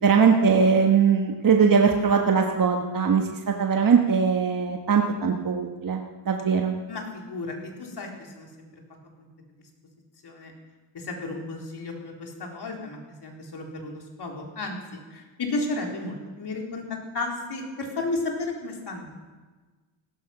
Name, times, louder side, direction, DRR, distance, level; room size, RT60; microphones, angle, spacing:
voice 1, 0.0-6.7, right 6 dB, 40° right, 2 dB, 1.5 m, -21 dB
voice 2, 6.9-8.1 8.4-8.7 9.2-9.3 10.2-10.5 10.9-16.8 17.1-19.2, left 2 dB, 50° left, 0 dB, 4.1 m, -33 dB
17.0 x 13.5 x 6.0 m, 1.3 s
cardioid pair, 70°, 50 cm